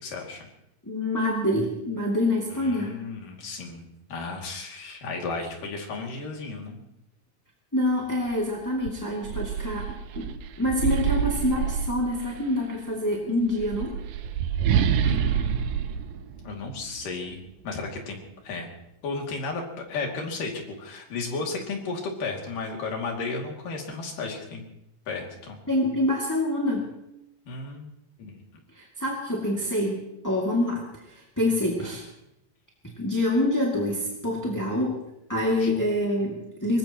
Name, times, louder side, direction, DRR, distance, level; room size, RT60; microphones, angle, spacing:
voice 1, 0.0-0.5 2.5-6.8 15.0-15.7 16.4-17.4 17.6-18.2 18.4-18.7 19.0-24.6 25.1-25.6 27.5-27.9 28.2-28.3 35.6-35.9, left 4 dB, 70° left, 1 dB, 4.2 m, -34 dB
voice 2, 0.9-3.0 7.7-14.0 25.7-26.9 28.7-32.1 33.0-35.0 35.3-36.8, left 1 dB, 5° left, -3 dB, 1.7 m, -26 dB
sound 1, 8.3-8.4 8.8-12.5 13.4-17.0, right 8 dB, 75° right, 2.4 m, -27 dB
24.0 x 19.5 x 3.0 m, 0.84 s
omnidirectional pair, 3.9 m